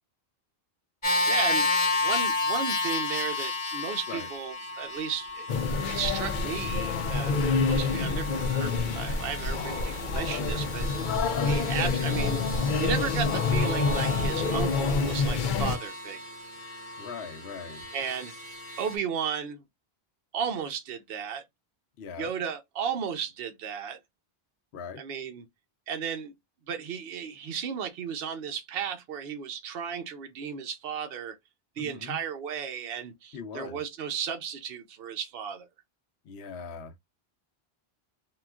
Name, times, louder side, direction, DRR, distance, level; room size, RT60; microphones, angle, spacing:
sound 1, 1.0-19.0, left 2 dB, 30° left, 1.0 m, -33 dB
voice 1, 1.3-1.7 2.0-5.5 5.8-11.1 11.4-16.2 17.9-18.3 18.8-19.6 20.3-21.4 22.2-24.0 25.0-25.4 25.9-26.3 26.7-31.4 31.8-35.7, right 7 dB, 70° right, 0.8 m, -34 dB
sound 2, 5.5-15.8, left 4 dB, 60° left, 0.6 m, -27 dB
voice 2, 17.0-17.8 22.0-22.3 24.7-25.0 31.8-32.2 33.3-33.8 36.2-36.9, left 6 dB, 90° left, 0.9 m, -40 dB
3.7 x 2.3 x 2.3 m
omnidirectional pair, 1.0 m